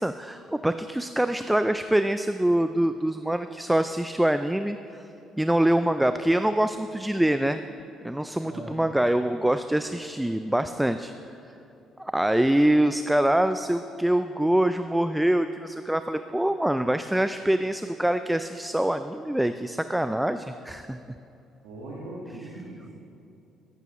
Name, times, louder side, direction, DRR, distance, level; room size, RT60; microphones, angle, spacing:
voice 1, 0.0-5.1 5.4-7.6 8.0-11.1 11.4-11.5 12.0-21.0, right 1 dB, 5° right, 10 dB, 0.3 m, -24 dB
voice 2, 8.4-8.8 21.6-22.9, right 1 dB, 85° right, -6 dB, 1.6 m, -40 dB
13.0 x 8.2 x 3.0 m, 2.8 s
supercardioid pair, 65°, 0 cm